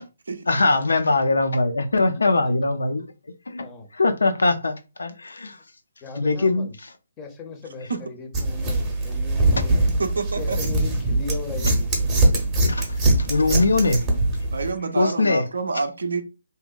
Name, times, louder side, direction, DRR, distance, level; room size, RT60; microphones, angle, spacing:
voice 1, 0.5-3.0 3.5-3.6 3.9-5.6 6.2-6.7 12.7-12.9 13.2-14.0 15.0-15.4, left 3 dB, 70° left, 0.4 m, -21 dB
voice 2, 6.0-6.8 7.2-9.8 10.4-11.9 13.0-13.1 14.8-14.9, left 3 dB, 20° left, 0.6 m, -37 dB
sound 1, 8.3-14.7, right 2 dB, 15° right, 0.7 m, -22 dB
voice 3, 10.0-10.6 14.5-16.2, right 4 dB, 65° right, 0.4 m, -27 dB
2.7 x 2.1 x 2.3 m
figure-of-eight pair, 135°, 0 cm